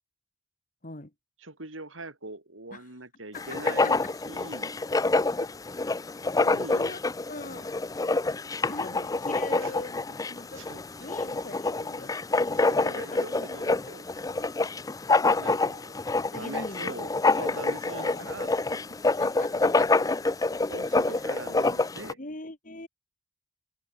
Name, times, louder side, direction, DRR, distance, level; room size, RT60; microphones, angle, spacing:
voice 1, 0.8-1.1 2.7-2.8 3.3-4.0 5.4-5.5 6.7-7.0 7.3-7.7 8.7-10.0 10.3-10.7 11.0-12.6 12.9-13.2 16.3-17.1 17.4-17.7 17.9-18.3 18.7-20.1 21.1-21.3 22.2-22.9, left 2 dB, 40° left, 2.3 m, -41 dB
voice 2, 1.4-4.0 4.3-4.7 6.4-6.9 9.5-9.7 10.4-10.8 12.5-14.1 15.4-18.5 20.7-22.2, right 2 dB, 85° right, 5.1 m, -42 dB
Writing, 3.4-22.1, left 3 dB, 20° left, 0.4 m, -27 dB
head